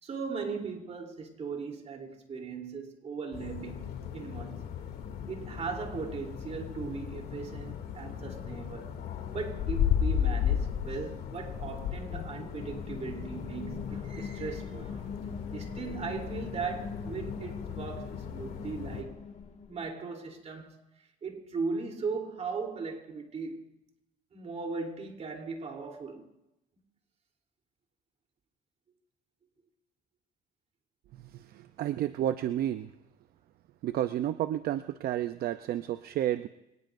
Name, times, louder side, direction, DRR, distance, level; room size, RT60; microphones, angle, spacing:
voice 1, 0.0-3.9 4.1-4.6 5.3-8.9 9.3-15.1 15.5-19.2 19.7-20.8 21.2-23.7 24.3-26.2, right 4 dB, 40° right, 3.4 m, -38 dB
sound 1, 3.3-19.0, left 9 dB, 70° left, 2.6 m, -35 dB
sound 2, 12.1-19.9, left 5 dB, 40° left, 1.8 m, -43 dB
voice 2, 31.3-32.9 33.8-36.5, right 12 dB, 65° right, 0.6 m, -31 dB
25.5 x 19.0 x 2.6 m
cardioid pair, 110°, 17 cm